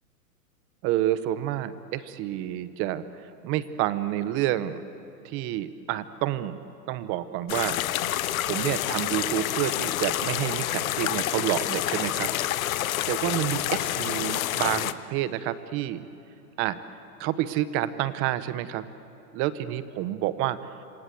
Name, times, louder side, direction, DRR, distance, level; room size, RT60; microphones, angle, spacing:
voice 1, 0.8-4.8 5.2-6.6 6.9-7.8 8.1-12.3 12.8-16.1 16.6-16.8 17.2-18.9 19.3-20.6, right 13 dB, 25° right, 14 dB, 1.0 m, -29 dB
sound 1, 7.5-14.9, left 13 dB, 60° left, 1.0 m, -28 dB
27.0 x 25.5 x 7.8 m, 2.9 s
hypercardioid pair, 145°, 48 cm